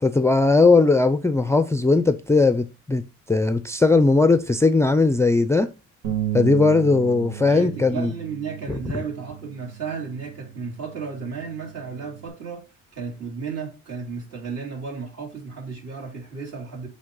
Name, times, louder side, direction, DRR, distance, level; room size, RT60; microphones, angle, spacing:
voice 1, 0.0-5.7 6.3-8.1 8.7-8.8, left 3 dB, 10° left, 0.4 m, -18 dB
Bass guitar, 6.0-12.3, right 12 dB, 85° right, 1.9 m, -34 dB
voice 2, 7.5-12.6 12.9-16.9, right 5 dB, 55° right, 3.1 m, -33 dB
7.8 x 3.3 x 3.8 m
cardioid pair, 90°, 30 cm